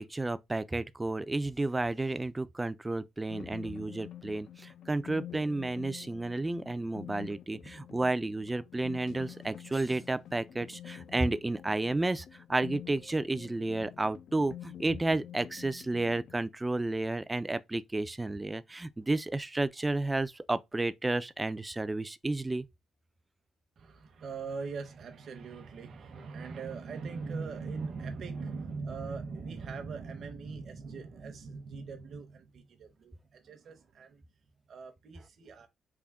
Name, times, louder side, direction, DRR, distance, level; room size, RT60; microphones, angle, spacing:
voice 1, 0.0-22.7, right 2 dB, 15° right, 0.3 m, -32 dB
sound 1, 3.3-16.3, left 11 dB, 70° left, 0.4 m, -48 dB
voice 2, 23.8-34.2 34.7-35.7, right 4 dB, 55° right, 0.7 m, -41 dB
3.5 x 2.1 x 3.5 m
cardioid pair, 90°, 0 cm